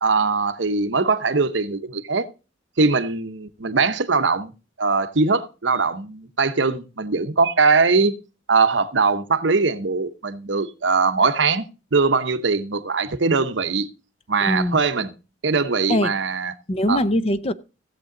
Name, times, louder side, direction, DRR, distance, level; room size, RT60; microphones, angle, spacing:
voice 1, 0.0-2.3 2.8-4.5 4.8-8.2 8.5-11.6 11.9-13.9 14.3-15.1 15.4-16.5 16.9-17.0, right 4 dB, 70° right, 0.9 m, -21 dB
voice 2, 14.4-14.8 15.9-16.1 16.7-17.5, left 1 dB, 30° left, 0.6 m, -22 dB
16.5 x 7.5 x 3.8 m
head